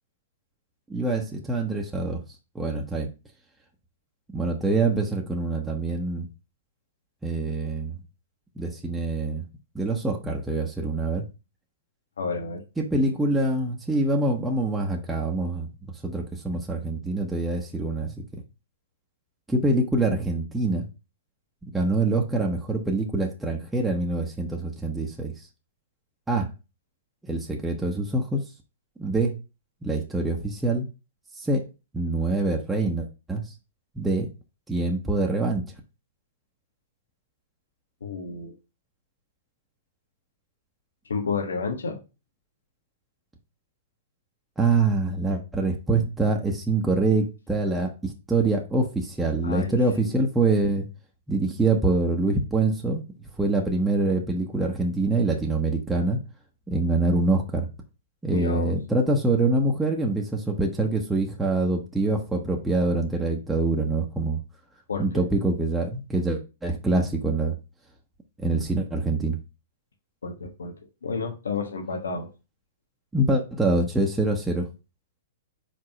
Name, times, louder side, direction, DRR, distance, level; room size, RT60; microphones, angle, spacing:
voice 1, 0.9-2.2 2.5-3.1 4.3-6.3 7.2-8.0 8.6-9.4 9.7-11.2 12.8-15.7 16.0-18.4 19.5-20.8 21.6-25.5 26.3-26.5 27.2-28.4 29.0-29.3 29.8-30.9 31.4-31.6 31.9-33.5 33.9-34.3 34.7-35.6 44.6-50.8 51.3-53.0 53.4-56.2 56.7-57.7 58.2-64.4 65.0-67.6 68.4-69.4 73.1-74.7, right 2 dB, 5° right, 0.9 m, -25 dB
voice 2, 12.2-12.6 38.0-38.5 41.0-42.0 49.4-49.8 50.0-50.1 58.3-58.7 64.9-65.1 70.2-70.7 71.0-72.3, left 4 dB, 90° left, 1.4 m, -30 dB
4.9 x 3.6 x 5.7 m
hypercardioid pair, 130°, 0 cm